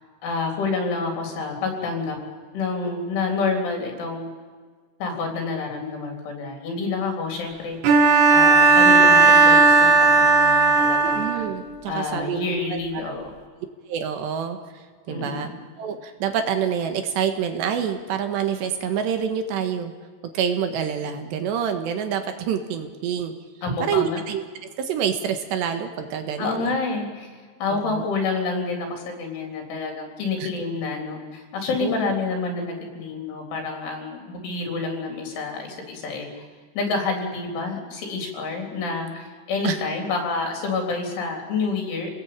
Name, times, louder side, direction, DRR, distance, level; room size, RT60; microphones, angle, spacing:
voice 1, 0.2-2.2 2.5-4.3 5.0-8.0 8.3-11.5 11.9-13.3 15.1-15.6 23.6-24.2 26.4-27.3 27.6-36.4 36.8-42.1, left 4 dB, 80° left, 2 dB, 6.2 m, -28 dB
Bowed string instrument, 7.8-11.6, right 3 dB, 90° right, 4.8 m, -15 dB
voice 2, 11.0-12.6 13.1-13.2 13.9-15.5 15.8-19.9 20.3-23.3 23.8-24.4 24.8-26.7 27.7-28.0 30.4-30.5 31.8-32.1 39.6-39.8, right 8 dB, 70° right, 6 dB, 3.5 m, -27 dB
28.5 x 19.0 x 8.8 m, 1.5 s
omnidirectional pair, 5.4 m